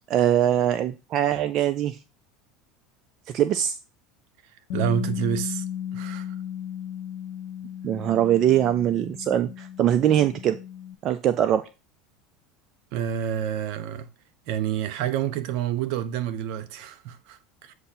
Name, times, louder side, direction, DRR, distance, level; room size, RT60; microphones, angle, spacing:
voice 1, 0.1-2.0 3.3-3.8 7.8-10.6 11.0-11.7, right 11 dB, 45° right, 0.5 m, -22 dB
Bass guitar, 4.7-10.9, left 10 dB, 75° left, 0.9 m, -35 dB
voice 2, 4.7-5.6 5.9-6.3 12.9-14.1 14.5-17.7, right 9 dB, 65° right, 0.8 m, -28 dB
8.0 x 2.7 x 5.7 m
hypercardioid pair, 100°, 0 cm